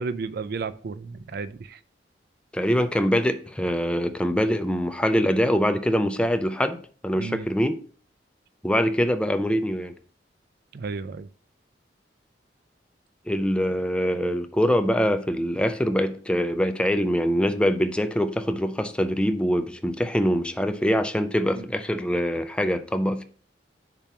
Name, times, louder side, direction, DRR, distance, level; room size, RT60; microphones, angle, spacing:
voice 1, 0.0-1.8 7.2-7.4 10.7-11.3 21.5-21.7, right 4 dB, 60° right, 0.4 m, -33 dB
voice 2, 2.5-7.8 8.6-9.9 13.3-23.2, equal, 5° left, 0.4 m, -24 dB
6.9 x 2.9 x 5.9 m
head